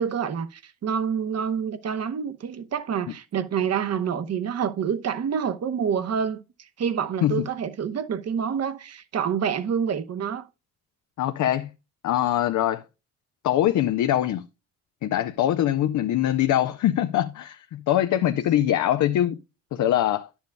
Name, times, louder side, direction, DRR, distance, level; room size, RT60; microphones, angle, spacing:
voice 1, 0.0-6.4 6.8-10.4, right 7 dB, 50° right, 0.9 m, -27 dB
voice 2, 11.2-11.7 12.0-12.8 13.4-14.4 15.0-19.4 19.7-20.3, left 12 dB, 60° left, 0.6 m, -23 dB
10.5 x 7.1 x 2.2 m
supercardioid pair, 65°, 33 cm